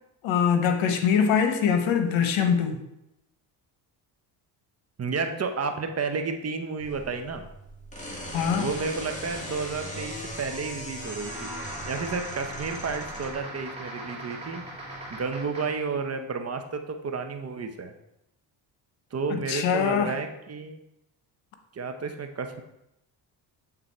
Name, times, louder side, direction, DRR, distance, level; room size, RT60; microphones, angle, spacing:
voice 1, 0.2-2.8 8.3-8.7 19.3-20.1, left 7 dB, 85° left, 7 dB, 1.0 m, -23 dB
voice 2, 5.0-7.5 8.5-11.5 11.9-14.6 15.1-17.9 19.1-20.8 21.7-22.6, right 4 dB, 35° right, 6 dB, 0.8 m, -31 dB
sound 1, 6.8-13.3, equal, 15° left, 1.6 m, -39 dB
sound 2, 10.9-15.9, right 1 dB, 15° right, 2.7 m, -39 dB
8.1 x 3.8 x 4.3 m, 0.86 s
cardioid pair, 85°, 45 cm